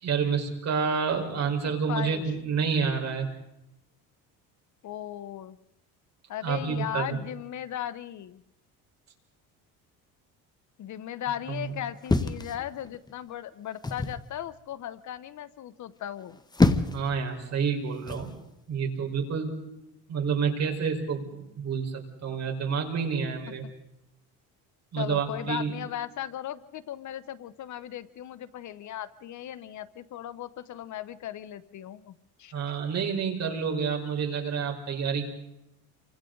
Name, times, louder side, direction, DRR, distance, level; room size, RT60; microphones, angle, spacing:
voice 1, 0.0-3.3 6.4-7.2 11.5-11.6 16.9-18.3 18.7-19.5 20.1-23.6 24.9-25.7 32.5-35.3, right 6 dB, 45° right, 3 dB, 4.6 m, -29 dB
voice 2, 1.9-2.3 4.8-5.6 6.3-8.4 10.8-16.4 25.0-32.5, left 11 dB, 50° left, 14 dB, 1.0 m, -37 dB
sound 1, 12.1-13.1 13.8-14.2 16.2-17.1 18.1-18.4, left 2 dB, 10° left, 1.1 m, -26 dB
29.5 x 25.0 x 3.9 m, 0.85 s
cardioid pair, 120°, 37 cm